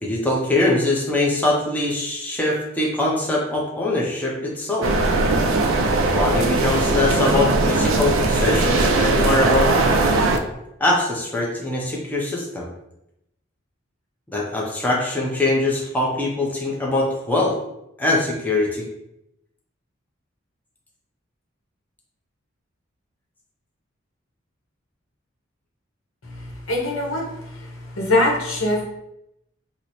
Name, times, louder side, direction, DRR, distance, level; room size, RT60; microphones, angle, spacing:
voice 1, 0.0-4.9 6.1-9.7 10.8-12.7 14.3-17.5 18.0-18.9, left 2 dB, 10° left, -3 dB, 0.5 m, -22 dB
sound 1, 4.8-10.4, right 2 dB, 85° right, 0.4 m, -19 dB
voice 2, 26.2-28.8, left 1 dB, 85° left, -1 dB, 0.9 m, -23 dB
2.9 x 2.0 x 4.0 m, 0.83 s
head